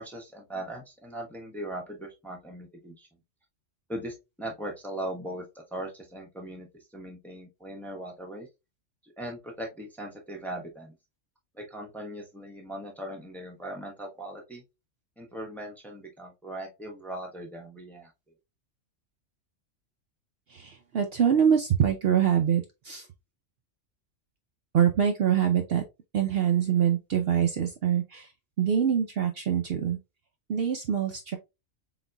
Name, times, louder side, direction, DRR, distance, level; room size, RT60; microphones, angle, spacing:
voice 1, 0.0-3.1 3.9-6.7 6.9-8.5 9.0-10.9 11.5-14.6 15.2-18.3, right 1 dB, ahead, 0.8 m, -39 dB
voice 2, 20.5-23.1 24.7-25.8 26.1-28.3 28.6-30.0 30.5-31.4, right 8 dB, 60° right, 0.7 m, -24 dB
4.0 x 4.0 x 2.2 m
omnidirectional pair, 1.3 m